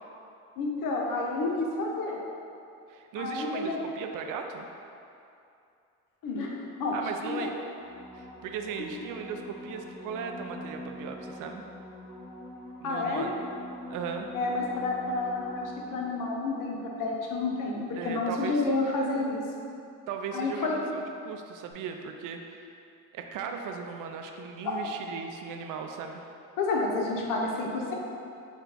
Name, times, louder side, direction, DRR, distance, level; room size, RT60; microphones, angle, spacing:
voice 1, 0.6-2.2 3.2-3.8 6.2-7.0 7.2-7.5 8.8-8.9 12.8-13.2 14.3-19.4 20.3-20.8 26.6-27.9, left 3 dB, 60° left, -1 dB, 0.8 m, -30 dB
voice 2, 2.9-4.7 6.9-7.5 8.1-11.6 12.8-13.3 13.9-14.3 18.0-18.6 20.1-22.7 23.1-26.3, right 6 dB, 60° right, 4 dB, 0.5 m, -37 dB
sound 1, 7.7-16.4 21.7-21.8, left 1 dB, 10° right, 1.4 m, -44 dB
4.4 x 2.3 x 3.8 m, 2.6 s
supercardioid pair, 80°, 36 cm